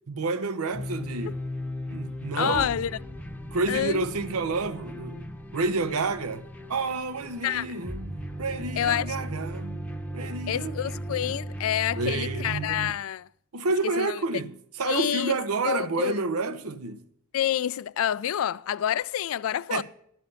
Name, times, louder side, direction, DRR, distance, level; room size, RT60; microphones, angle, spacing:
voice 1, 0.1-1.4 1.9-2.7 3.5-5.3 5.5-6.4 6.7-9.8 10.1-11.3 11.9-12.9 13.5-17.0 19.7-19.8, right 3 dB, 85° right, 0.8 m, -29 dB
sound 1, 0.7-12.9, equal, 5° left, 0.8 m, -37 dB
voice 2, 2.4-2.9 3.7-4.0 7.4-7.7 8.8-9.1 10.5-13.3 14.0-14.2 14.8-15.3 15.6-16.2 17.3-19.8, left 10 dB, 70° left, 0.3 m, -28 dB
12.5 x 5.8 x 5.7 m
head